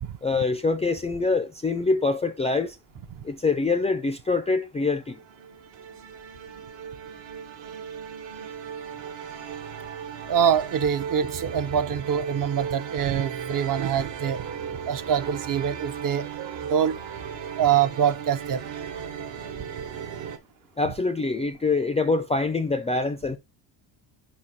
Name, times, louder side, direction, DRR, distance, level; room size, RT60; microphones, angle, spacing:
voice 1, 0.2-2.8 3.2-5.2 20.8-23.4, left 3 dB, 15° left, 0.3 m, -25 dB
sound 1, 5.0-20.4, right 7 dB, 65° right, 1.3 m, -36 dB
voice 2, 10.3-14.4 14.9-16.2 16.6-17.0 17.5-18.6, right 8 dB, 45° right, 0.6 m, -24 dB
5.2 x 4.1 x 6.1 m
cardioid pair, 150°, 47 cm